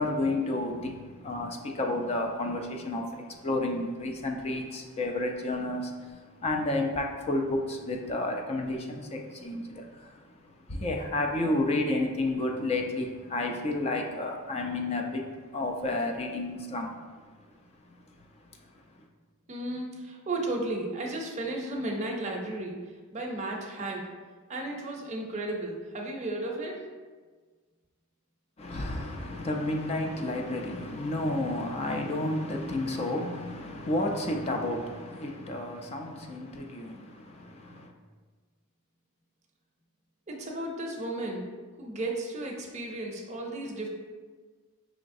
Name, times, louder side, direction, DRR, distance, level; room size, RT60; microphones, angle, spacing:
voice 1, 0.0-19.1 28.6-37.9, left 2 dB, 30° left, 2 dB, 0.3 m, -31 dB
voice 2, 19.5-22.8 23.1-24.1 24.5-26.9 40.3-41.5 41.8-43.9, right 2 dB, 30° right, -1 dB, 0.5 m, -34 dB
4.8 x 3.0 x 2.6 m, 1.4 s
head